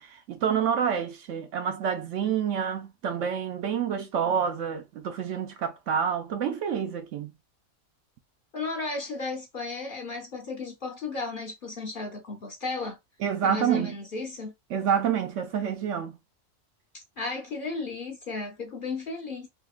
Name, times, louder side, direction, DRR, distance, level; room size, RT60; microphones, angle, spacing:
voice 1, 0.0-7.3 13.2-13.9 14.7-16.2, right 8 dB, 70° right, 0.9 m, -28 dB
voice 2, 8.5-13.0 13.4-14.5 16.9-19.5, left 3 dB, 45° left, 0.9 m, -34 dB
3.6 x 2.7 x 2.4 m
omnidirectional pair, 1.4 m